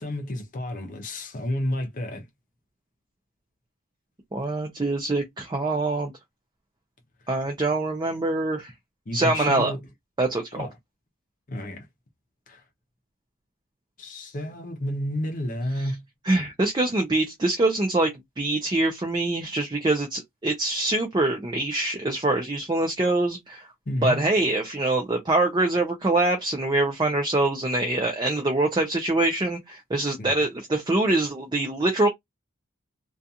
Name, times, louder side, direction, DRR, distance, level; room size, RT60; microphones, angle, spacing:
voice 1, 0.0-2.3 9.1-9.8 10.5-10.7 11.5-11.9 12.5-12.6 14.0-16.0 23.9-24.3 30.2-30.3, left 1 dB, 35° left, 0.6 m, -31 dB
voice 2, 4.3-6.1 7.3-8.7 9.1-9.7 10.2-10.7 15.8-15.9 16.3-23.7 24.0-32.1, right 2 dB, 20° right, 0.4 m, -24 dB
2.4 x 2.3 x 2.7 m
head